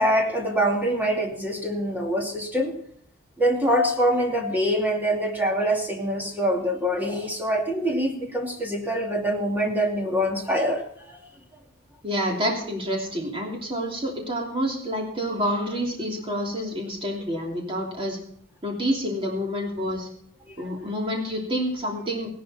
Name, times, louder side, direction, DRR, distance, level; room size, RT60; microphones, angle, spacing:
voice 1, 0.0-2.7 3.4-11.2, equal, 10° right, 1 dB, 2.6 m, -24 dB
voice 2, 12.0-18.2 18.6-20.1 20.6-22.3, equal, 25° right, -1 dB, 3.0 m, -28 dB
17.5 x 11.5 x 4.3 m, 0.63 s
head